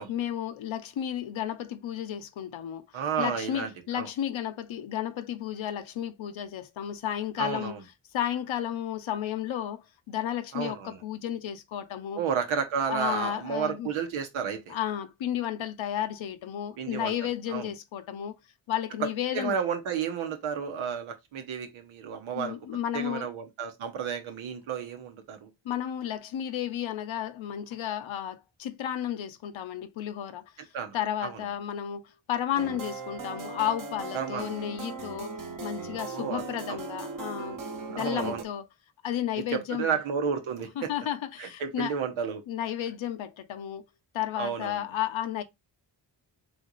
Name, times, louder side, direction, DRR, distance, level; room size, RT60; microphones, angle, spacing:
voice 1, 0.1-2.9 3.2-7.8 8.1-12.2 12.9-13.9 14.7-18.4 18.7-19.6 22.3-23.3 25.6-30.5 30.9-32.0 32.3-35.3 35.6-37.6 37.9-38.6 39.0-39.9 40.8-41.9 42.5-43.8 44.1-45.4, left 10 dB, 75° left, 0.8 m, -32 dB
voice 2, 2.9-4.1 7.4-7.8 10.5-11.0 12.1-14.8 16.8-17.7 19.0-22.6 22.9-25.5 30.7-31.0 31.2-31.4 34.1-34.5 36.1-36.4 36.7-36.8 37.9-38.4 39.5-40.9 41.4-42.4 44.4-44.8, right 7 dB, 90° right, 0.9 m, -32 dB
sound 1, 32.5-38.4, right 4 dB, 45° right, 1.1 m, -38 dB
3.5 x 3.2 x 3.9 m
supercardioid pair, 40°, 47 cm